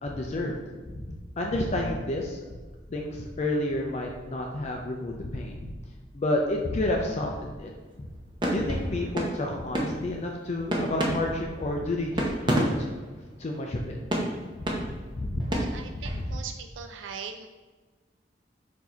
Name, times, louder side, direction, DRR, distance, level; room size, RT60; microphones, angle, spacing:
voice 1, 0.0-0.6 1.4-2.4 2.9-5.7 6.1-7.7 8.0-8.1 8.5-12.9 13.4-14.0 14.6-14.7 15.2-15.4, left 1 dB, 35° left, 1 dB, 0.4 m, -30 dB
sound 1, 7.6-7.9 8.4-13.8 14.1-16.3, equal, 25° right, 0.7 m, -30 dB
voice 2, 15.5-17.5, right 6 dB, 80° right, 6 dB, 0.3 m, -40 dB
4.5 x 2.7 x 4.3 m, 1.3 s
head